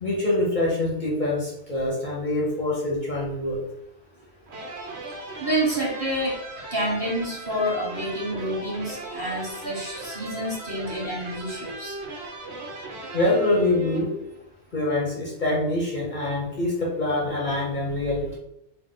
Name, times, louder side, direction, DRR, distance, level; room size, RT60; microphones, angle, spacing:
voice 1, 0.0-3.6 13.1-14.1 14.7-18.4, left 2 dB, 45° left, -3 dB, 0.9 m, -25 dB
sound 1, 4.5-14.4, right 2 dB, 75° right, 1.2 m, -38 dB
voice 2, 5.4-6.4 6.7-12.0, right 1 dB, 20° right, -6 dB, 1.1 m, -28 dB
3.9 x 2.2 x 3.7 m, 0.78 s
omnidirectional pair, 1.2 m